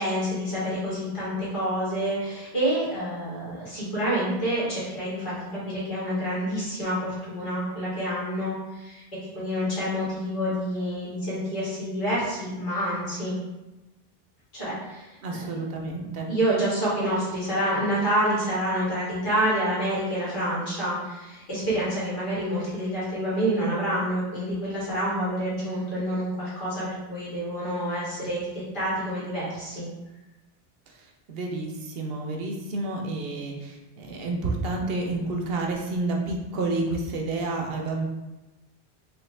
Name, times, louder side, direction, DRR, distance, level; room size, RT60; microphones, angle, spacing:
voice 1, 0.0-9.0 9.3-13.3 14.5-15.4 16.3-28.4 28.7-29.8, equal, 55° left, -9 dB, 1.9 m, -28 dB
voice 2, 15.2-16.3 31.3-38.1, right 2 dB, 70° right, 1 dB, 0.9 m, -29 dB
3.4 x 3.2 x 3.2 m, 1.0 s
omnidirectional pair, 1.0 m